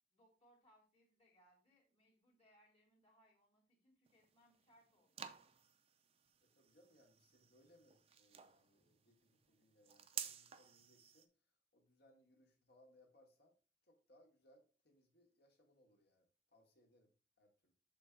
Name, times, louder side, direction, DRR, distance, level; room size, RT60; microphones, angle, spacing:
voice 1, 0.1-5.3, equal, 30° left, -6 dB, 1.7 m, -72 dB
sound 1, 4.1-11.3, right 8 dB, 30° right, 0.5 m, -53 dB
voice 2, 6.4-13.6 13.8-17.7, left 1 dB, 60° left, 2 dB, 1.7 m, -71 dB
6.7 x 3.8 x 4.5 m, 0.36 s
head